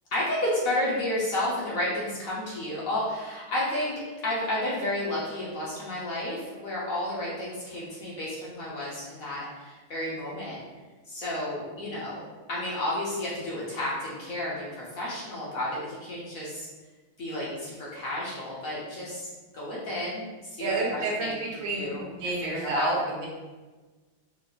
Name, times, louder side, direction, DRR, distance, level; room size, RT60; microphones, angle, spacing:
voice 1, 0.1-3.9 4.2-10.6 11.1-16.7 17.2-21.4 21.7-22.1 22.4-23.0, left 1 dB, 55° left, -7 dB, 1.0 m, -31 dB
voice 2, 20.6-23.3, right 2 dB, 90° right, -4 dB, 1.7 m, -30 dB
4.6 x 2.9 x 2.3 m, 1.3 s
omnidirectional pair, 2.1 m